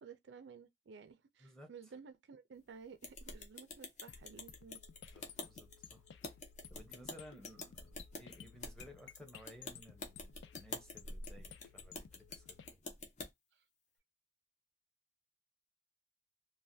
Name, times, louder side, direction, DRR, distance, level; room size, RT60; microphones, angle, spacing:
voice 1, 0.0-4.8, right 6 dB, 70° right, 0.4 m, -54 dB
sound 1, 3.0-13.3, left 2 dB, 40° left, 0.7 m, -48 dB
sound 2, 4.1-12.7, left 8 dB, 75° left, 0.4 m, -56 dB
voice 2, 5.1-6.0 6.7-12.8, equal, 5° left, 0.8 m, -57 dB
3.1 x 2.2 x 2.6 m
head